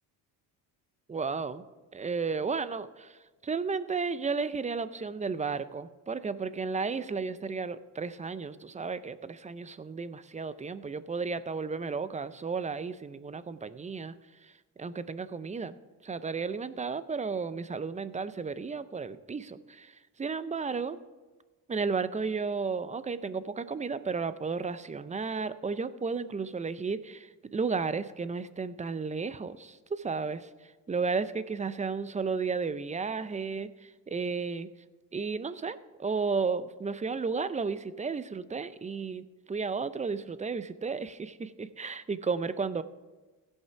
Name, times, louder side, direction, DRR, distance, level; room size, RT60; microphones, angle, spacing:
voice 1, 1.1-1.6 1.9-3.2 3.4-14.1 14.4-15.8 16.0-21.0 21.7-30.5 30.9-34.7 35.1-42.8, right 4 dB, 15° right, 14 dB, 0.5 m, -33 dB
15.5 x 5.5 x 5.8 m, 1.3 s
cardioid pair, 85°, 42 cm